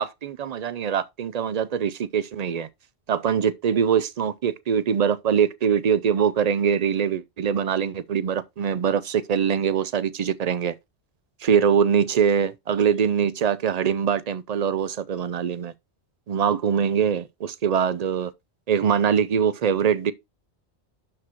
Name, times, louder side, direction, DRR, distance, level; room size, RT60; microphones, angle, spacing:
voice 1, 0.0-2.7 3.1-10.8 11.4-15.7 16.3-18.3 18.7-20.1, right 7 dB, 50° right, 0.5 m, -23 dB
12.0 x 4.7 x 2.8 m
omnidirectional pair, 1.1 m